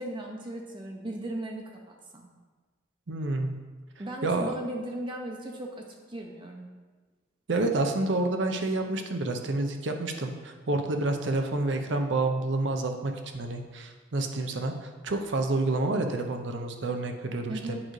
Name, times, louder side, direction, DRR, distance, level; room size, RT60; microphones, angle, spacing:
voice 1, 0.0-2.3 4.0-6.7 17.5-17.8, right 1 dB, 25° right, 1 dB, 0.6 m, -37 dB
voice 2, 3.1-3.6 4.2-4.5 7.5-17.7, right 2 dB, 65° right, 5 dB, 0.6 m, -29 dB
8.7 x 5.1 x 3.1 m, 1.4 s
head